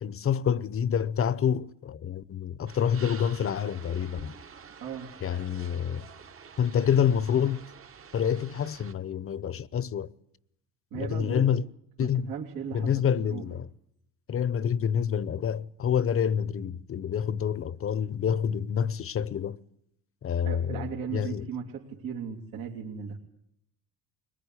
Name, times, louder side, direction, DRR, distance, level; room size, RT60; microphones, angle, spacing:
voice 1, 0.0-4.4 5.2-6.0 6.6-7.6 8.1-10.1 10.9-11.6 12.0-12.3 12.7-13.7 14.3-19.6 20.2-21.4, left 8 dB, 40° left, 0.9 m, -27 dB
sound 1, 2.7-8.9, right 7 dB, 40° right, 1.4 m, -48 dB
voice 2, 4.8-5.1 10.9-11.5 12.0-13.5 20.5-23.2, right 7 dB, 80° right, 3.4 m, -37 dB
22.0 x 20.5 x 10.0 m
cardioid pair, 100°, 34 cm